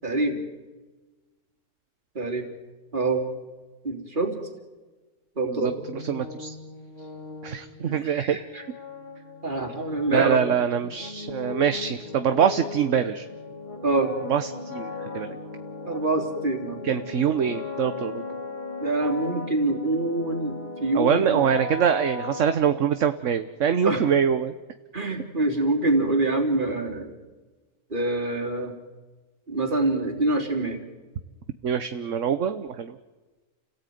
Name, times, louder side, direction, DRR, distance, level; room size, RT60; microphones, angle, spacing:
voice 1, 0.0-0.4 2.1-2.5 2.9-3.2 3.8-4.3 5.4-5.8 8.0-8.6 9.4-10.4 13.8-14.1 15.8-16.8 18.8-21.4 23.8-24.0 24.9-27.2 27.9-28.7 29.5-30.8, right 2 dB, 30° right, 2 dB, 3.5 m, -25 dB
voice 2, 5.4-6.5 7.4-8.4 10.1-13.3 14.3-15.4 16.8-18.2 20.9-24.5 31.6-33.0, right 8 dB, 60° right, 10 dB, 1.3 m, -24 dB
sound 1, 5.7-23.3, left 3 dB, 30° left, 2.3 m, -38 dB
30.0 x 17.5 x 9.3 m, 1.2 s
omnidirectional pair, 1.6 m